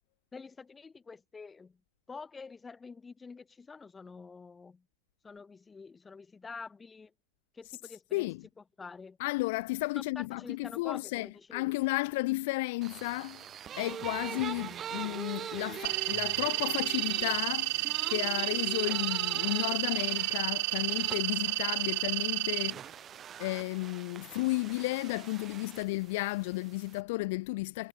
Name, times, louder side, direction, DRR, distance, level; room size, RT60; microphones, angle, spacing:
voice 1, 0.3-1.8 2.1-4.8 5.2-7.1 7.5-8.3 8.6-9.2 10.1-11.7, left 4 dB, 15° left, 6.7 m, -47 dB
voice 2, 8.1-8.4 9.2-13.5 13.8-22.8 23.4-27.9, left 22 dB, 50° left, 2.9 m, -33 dB
sound 1, 12.8-27.0, right 9 dB, 25° right, 6.5 m, -43 dB
sound 2, 15.8-22.7, right 22 dB, 50° right, 1.5 m, -31 dB
figure-of-eight pair, 90°, 0 cm